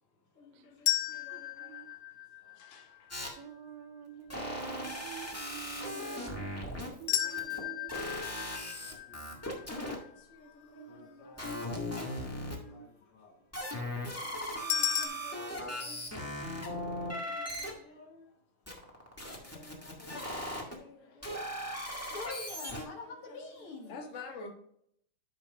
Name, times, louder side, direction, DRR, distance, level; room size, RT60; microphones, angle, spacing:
voice 1, 0.3-2.0 2.5-3.2 3.4-3.5 4.3-5.0 5.5-5.6 6.1-8.6 9.8-12.6 14.2-16.2 17.0-18.3 19.5-21.4 23.0-24.5, left 3 dB, 40° left, 1.1 m, -53 dB
sound 1, 0.9-3.0 7.1-10.2 14.7-15.1, left 11 dB, 80° left, 1.6 m, -34 dB
voice 2, 1.1-1.9 3.4-6.5 7.0-8.7 9.9-10.0 10.7-12.9 15.0-15.4, right 8 dB, 85° right, 1.6 m, -50 dB
sound 2, 3.1-3.3 4.3-7.6 7.9-9.9 11.4-12.5 13.5-17.7 18.6-20.7 21.2-22.8, equal, 15° left, 0.4 m, -38 dB
voice 3, 9.5-10.0 10.9-11.6 11.9-12.1 12.4-12.9 13.1-13.3 22.1-23.9, left 3 dB, 55° left, 1.6 m, -47 dB
13.5 x 5.4 x 2.4 m
omnidirectional pair, 3.8 m